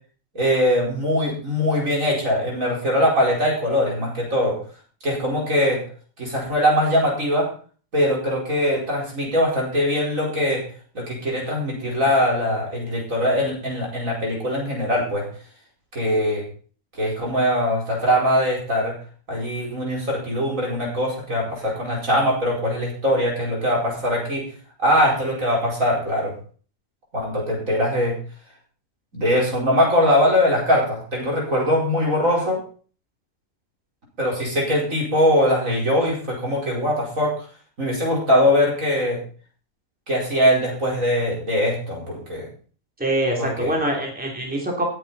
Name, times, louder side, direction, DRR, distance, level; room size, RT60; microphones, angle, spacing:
voice 1, 0.3-4.6 5.0-5.8 6.2-7.5 7.9-10.6 10.9-15.2 15.9-16.4 16.9-19.0 19.3-24.4 24.8-26.3 27.1-28.2 29.1-32.6 34.2-37.4 37.8-39.2 40.1-42.5 43.4-43.7, equal, 55° right, -2 dB, 5.1 m, -21 dB
voice 2, 43.0-44.8, right 1 dB, 5° right, -1 dB, 3.1 m, -24 dB
18.5 x 9.2 x 4.2 m, 0.41 s
omnidirectional pair, 1.6 m